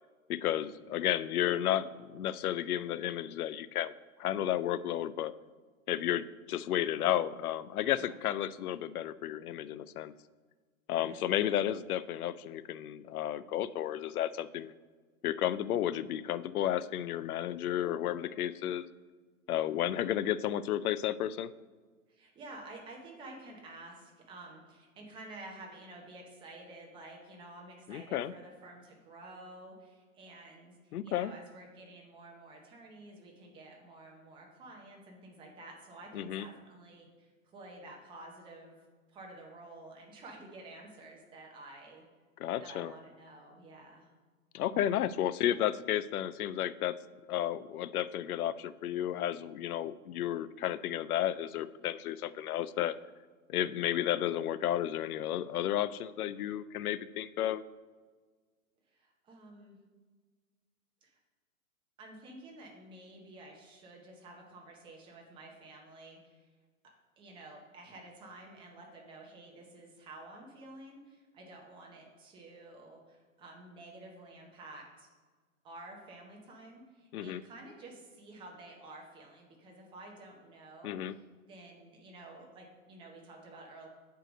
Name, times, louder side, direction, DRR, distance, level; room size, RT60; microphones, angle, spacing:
voice 1, 0.3-3.9 4.2-5.3 5.9-10.1 10.9-14.7 15.2-18.9 19.5-21.5 27.9-28.3 30.9-31.3 36.1-36.5 42.4-42.9 44.5-47.0 47.3-52.9 53.5-57.6 77.1-77.4 80.8-81.2, left 11 dB, 90° left, 15 dB, 0.5 m, -32 dB
voice 2, 10.9-11.4 22.1-38.8 39.1-42.0 42.6-44.1 58.9-59.8 61.0-61.2 62.0-66.5 67.2-75.1 75.6-83.9, right 2 dB, 10° right, 0 dB, 0.8 m, -51 dB
7.7 x 4.7 x 5.1 m, 1.4 s
hypercardioid pair, 155°, 43 cm